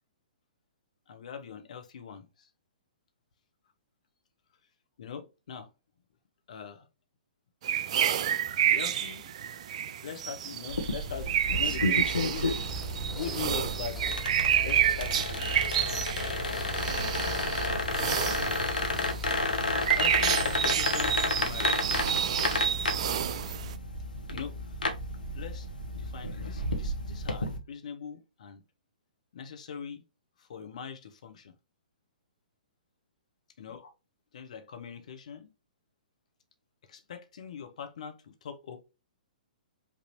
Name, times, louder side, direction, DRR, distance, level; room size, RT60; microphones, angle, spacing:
voice 1, 1.1-2.2 5.0-5.7 6.5-6.9 8.6-9.3 10.0-12.5 13.1-14.3 14.6-15.6 20.0-21.9 24.3-24.6 25.4-25.7 25.9-28.6 29.3-30.0 30.4-31.5 33.6-33.9 34.3-35.5 36.9-38.8, left 7 dB, 50° left, 0.8 m, -41 dB
sound 1, 7.6-23.7, right 9 dB, 45° right, 0.4 m, -30 dB
sound 2, 10.7-27.6, left 2 dB, 70° left, 1.0 m, -32 dB
sound 3, 12.5-22.5, right 2 dB, ahead, 1.0 m, -43 dB
5.4 x 2.7 x 3.0 m
figure-of-eight pair, 120°, 5 cm